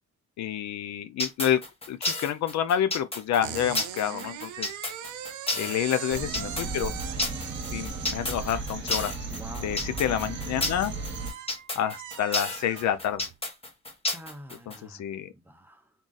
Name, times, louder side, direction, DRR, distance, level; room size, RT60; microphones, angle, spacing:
voice 1, 0.4-1.6 1.9-4.7 5.6-6.9 7.7-9.1 9.6-10.9 11.8-13.2 14.8-15.3, left 10 dB, 65° left, 0.5 m, -28 dB
sound 1, 1.2-14.8, left 2 dB, 20° left, 1.1 m, -31 dB
sound 2, 3.4-13.4, right 11 dB, 75° right, 0.6 m, -41 dB
sound 3, 6.1-11.3, right 3 dB, 35° right, 1.2 m, -35 dB
voice 2, 9.3-10.0 14.1-15.9, right 1 dB, 5° right, 0.8 m, -47 dB
3.7 x 2.4 x 3.9 m
cardioid pair, 90°, 30 cm